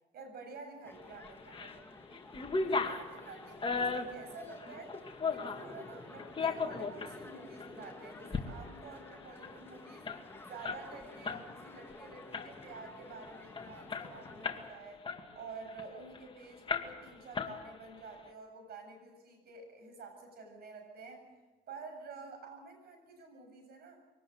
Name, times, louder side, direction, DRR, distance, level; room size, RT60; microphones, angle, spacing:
voice 1, 0.1-5.0 5.3-10.1 10.4-15.0 15.3-21.3 21.7-24.0, right 4 dB, 65° right, 5 dB, 7.7 m, -50 dB
sound 1, 0.8-14.7, left 3 dB, 15° left, 2.4 m, -52 dB
sound 2, 1.2-1.8 2.1-5.7 6.2-7.1 7.6-7.7 8.1-8.4 8.7-8.8 9.1-11.4 11.8-12.0 12.3-12.8 13.2-13.3 13.6-14.7 15.0-16.2 16.7-17.1 17.3-18.0, left 4 dB, 30° left, 2.3 m, -36 dB
23.5 x 18.5 x 8.0 m, 1.2 s
cardioid pair, 95°, 18 cm